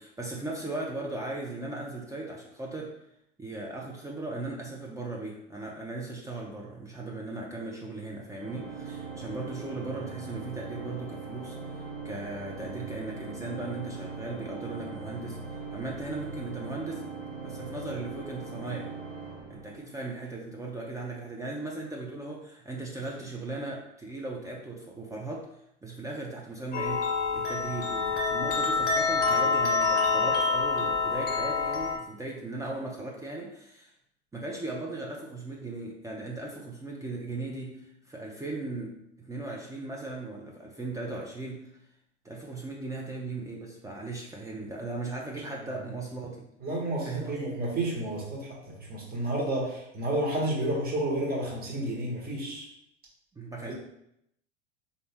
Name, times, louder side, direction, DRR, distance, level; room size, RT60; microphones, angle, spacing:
voice 1, 0.0-2.9 3.4-11.8 12.0-15.4 15.7-17.0 17.4-18.9 19.5-25.5 25.8-27.1 27.3-33.9 34.3-41.7 42.2-46.4 47.0-47.6 53.4-53.7, right 2 dB, 10° right, -2 dB, 0.5 m, -37 dB
Organ, 8.4-20.2, right 4 dB, 85° right, 0.9 m, -40 dB
sound 1, 26.7-32.0, left 4 dB, 25° left, 1.0 m, -26 dB
voice 2, 46.6-52.7 53.6-53.7, right 1 dB, 25° right, -2 dB, 1.4 m, -31 dB
3.9 x 2.8 x 3.5 m, 0.78 s
figure-of-eight pair, 85°, 37 cm